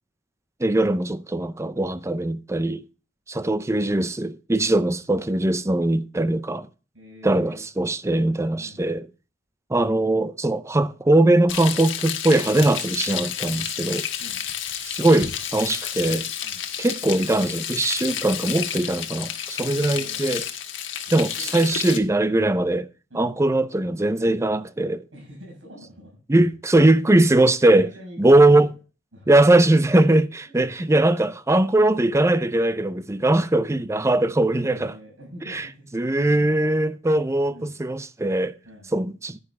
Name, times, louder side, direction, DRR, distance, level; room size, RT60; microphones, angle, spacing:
voice 1, 0.6-2.8 3.3-6.7 7.2-9.0 9.7-14.1 14.8-16.3 16.8-20.4 21.1-22.9 23.1-25.0 26.3-27.9 28.2-28.7 29.3-34.9 35.5-35.6 35.9-38.5 38.9-39.4, right 2 dB, 15° right, 0.5 m, -20 dB
voice 2, 6.9-7.7 8.6-9.0 14.2-14.4 16.4-16.6 19.6-20.2 21.0-21.5 23.1-23.3 25.1-26.5 27.8-28.7 29.1-29.6 30.4-31.0 34.6-35.9 37.5-37.7 38.6-38.9, equal, 90° right, 6.4 m, -45 dB
Frying (food), 11.5-22.0, left 9 dB, 75° left, 1.4 m, -30 dB
11.0 x 9.8 x 3.5 m
head